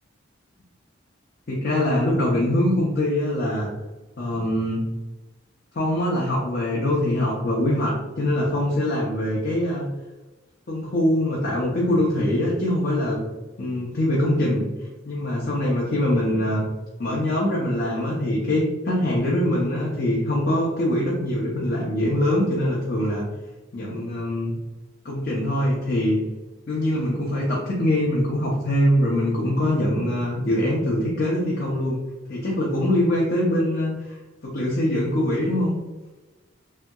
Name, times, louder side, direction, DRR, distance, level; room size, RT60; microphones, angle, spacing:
voice 1, 1.5-3.7 4.2-4.8 5.7-9.9 10.7-13.2 13.6-14.6 15.0-16.7 17.0-23.2 23.7-24.5 25.0-26.2 26.7-32.0 32.3-35.7, left 1 dB, 50° left, -5 dB, 0.6 m, -23 dB
3.4 x 2.7 x 2.2 m, 1.1 s
head